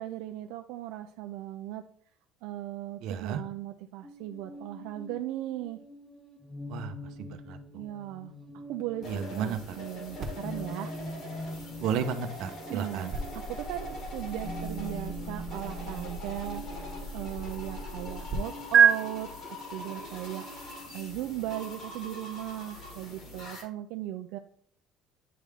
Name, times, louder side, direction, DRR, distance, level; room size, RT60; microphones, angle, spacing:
voice 1, 0.0-1.9 2.4-5.8 7.7-8.3 8.7-10.9 12.7-24.4, right 14 dB, 80° right, 5 dB, 0.4 m, -38 dB
voice 2, 3.0-3.4 6.7-7.6 9.0-9.8 11.8-13.1, right 7 dB, 60° right, 8 dB, 0.8 m, -33 dB
sound 1, 4.0-21.8, equal, 10° left, 1.0 m, -44 dB
sound 2, 9.0-23.6, left 1 dB, 45° left, 2.4 m, -43 dB
sound 3, 10.2-18.4 18.7-18.9, right 7 dB, 25° right, 1.2 m, -30 dB
9.5 x 3.6 x 3.4 m, 0.62 s
cardioid pair, 165°, 0 cm